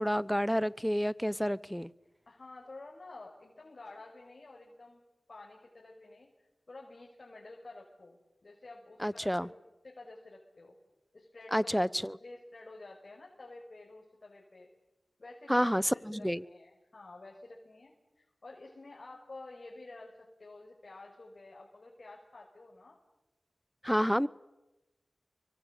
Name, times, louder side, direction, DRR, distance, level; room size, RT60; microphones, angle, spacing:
voice 1, 0.0-1.9 9.0-9.5 11.5-12.2 15.5-16.4 23.8-24.3, equal, ahead, 19 dB, 0.9 m, -29 dB
voice 2, 2.3-6.3 6.7-8.2 8.4-10.7 11.1-14.7 15.2-23.0, left 2 dB, 55° left, -1 dB, 5.7 m, -51 dB
29.5 x 24.0 x 8.5 m, 1.0 s
cardioid pair, 45°, 0 cm